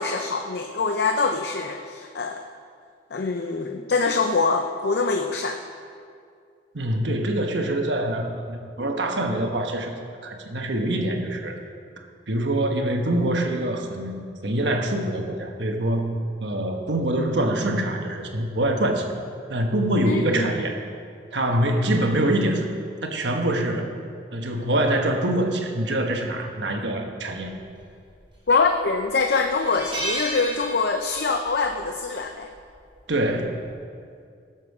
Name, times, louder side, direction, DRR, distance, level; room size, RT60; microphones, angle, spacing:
voice 1, 0.0-2.4 3.1-5.6 20.0-20.5 28.5-32.5, left 4 dB, 60° left, 4 dB, 0.6 m, -24 dB
voice 2, 6.7-9.9 10.2-11.6 12.3-19.1 19.5-20.8 21.3-22.7 23.0-23.9 24.3-27.6 33.1-33.6, right 1 dB, 70° right, 3 dB, 1.3 m, -24 dB
sound 1, 28.1-28.7 29.0-29.1 29.5-31.4 31.6-31.9 33.1-33.4, right 1 dB, 25° right, 2.1 m, -32 dB
18.0 x 7.3 x 4.8 m, 2.3 s
head